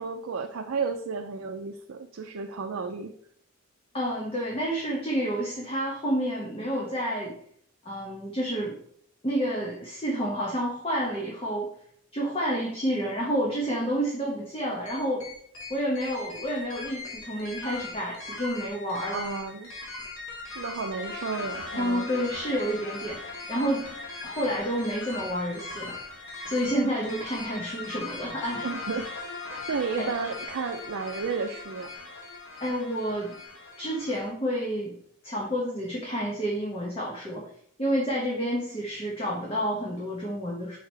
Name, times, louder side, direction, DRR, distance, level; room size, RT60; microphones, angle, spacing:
voice 1, 0.0-3.1 19.1-19.7 20.5-22.1 28.6-29.1 29.7-31.9, right 5 dB, 80° right, 4 dB, 0.5 m, -32 dB
voice 2, 3.9-7.3 7.8-8.8 9.2-11.7 12.1-15.2 15.7-19.2 21.8-23.9 24.2-25.9 26.4-28.7 29.5-29.6 30.0-30.1 32.6-33.4 33.8-34.9 35.2-37.5 37.8-40.8, equal, 25° left, -3 dB, 1.1 m, -29 dB
sound 1, 14.9-34.3, left 3 dB, 75° left, 1.8 m, -39 dB
6.3 x 4.7 x 3.3 m, 0.65 s
head